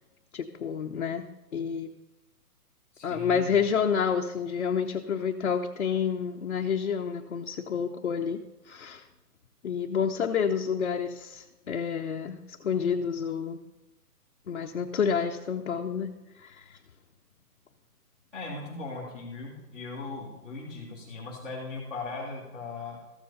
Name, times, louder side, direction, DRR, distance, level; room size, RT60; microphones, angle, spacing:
voice 1, 0.3-1.3 1.5-1.9 3.0-8.4 8.7-9.0 9.6-13.6 14.5-16.1 16.4-16.8, left 7 dB, 50° left, 1 dB, 0.7 m, -29 dB
voice 2, 2.9-3.6 18.3-23.0, left 3 dB, ahead, -11 dB, 0.8 m, -38 dB
14.0 x 7.6 x 4.1 m, 1.0 s
hypercardioid pair, 170°, 47 cm